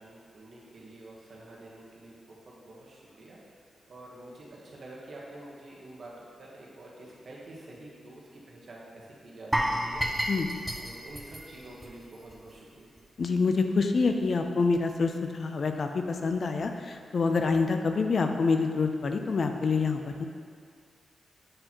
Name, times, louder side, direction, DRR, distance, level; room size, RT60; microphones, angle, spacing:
voice 1, 0.0-2.2 2.5-3.4 3.9-6.1 6.4-9.5 9.8-10.0 10.8-12.9, right 1 dB, 60° right, -4 dB, 1.2 m, -47 dB
sound 1, 9.5-12.5 12.8-13.0 13.5-13.6, equal, 10° right, 0.5 m, -31 dB
voice 2, 13.2-20.2, left 4 dB, 60° left, 5 dB, 0.4 m, -27 dB
7.6 x 4.2 x 3.0 m, 2.1 s
cardioid pair, 80°, 0 cm